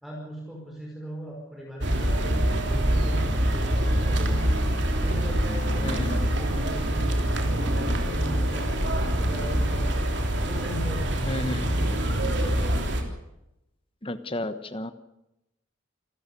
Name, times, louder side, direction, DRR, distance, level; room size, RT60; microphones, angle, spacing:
voice 1, 0.0-4.4 5.0-9.9 10.4-11.7, equal, ahead, -2 dB, 5.2 m, -39 dB
sound 1, 1.8-13.0, right 1 dB, 55° right, 3.4 m, -25 dB
voice 2, 5.8-6.2 11.3-11.9 14.0-14.9, left 1 dB, 25° left, 12 dB, 1.1 m, -32 dB
28.0 x 14.5 x 7.0 m, 0.88 s
head